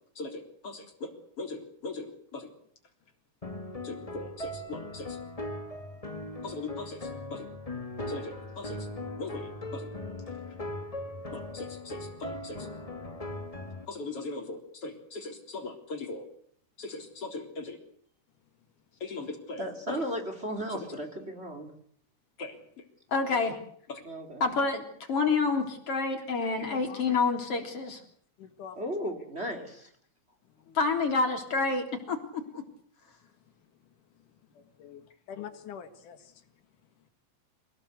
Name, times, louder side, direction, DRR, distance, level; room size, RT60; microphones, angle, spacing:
voice 1, 0.2-1.1 1.4-2.5 3.8-5.2 6.4-7.5 8.1-8.9 9.2-9.9 11.3-12.7 13.9-16.2 16.8-17.8 19.0-19.6 20.7-20.8 22.4-22.6 23.1-23.6 23.9-24.0 24.4-28.0 30.7-32.6, left 4 dB, 45° left, 4 dB, 4.5 m, -32 dB
sound 1, 3.4-13.9, left 1 dB, 15° left, 1.2 m, -39 dB
voice 2, 19.6-21.7 24.0-24.4 28.8-29.9, equal, 20° right, 5 dB, 3.5 m, -35 dB
voice 3, 26.7-27.1 28.4-28.8 29.6-29.7 30.6-31.1 34.5-36.4, left 8 dB, 80° left, 8 dB, 3.2 m, -46 dB
26.5 x 19.0 x 8.2 m, 0.62 s
omnidirectional pair, 3.6 m